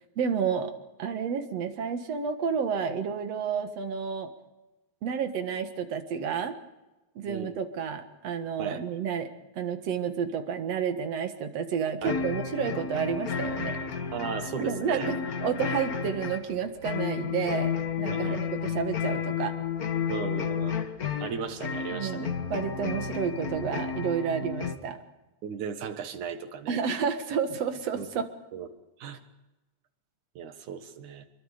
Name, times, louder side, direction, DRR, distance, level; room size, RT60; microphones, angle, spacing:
voice 1, 0.2-0.7 1.0-4.3 5.0-6.6 7.2-9.3 9.5-13.8 14.6-19.5 21.9-25.0 26.7-28.3, right 7 dB, 60° right, 7 dB, 2.6 m, -30 dB
voice 2, 7.3-7.6 8.6-8.8 12.0-12.1 14.1-15.1 18.1-18.4 20.1-20.8 21.2-22.3 25.4-26.8 27.9-28.1 28.5-28.7 29.0-29.2 30.4-31.3, right 7 dB, 80° right, 8 dB, 3.0 m, -36 dB
sound 1, 12.0-24.8, left 6 dB, 50° left, 1.1 m, -32 dB
26.0 x 23.0 x 5.1 m, 1.1 s
omnidirectional pair, 3.4 m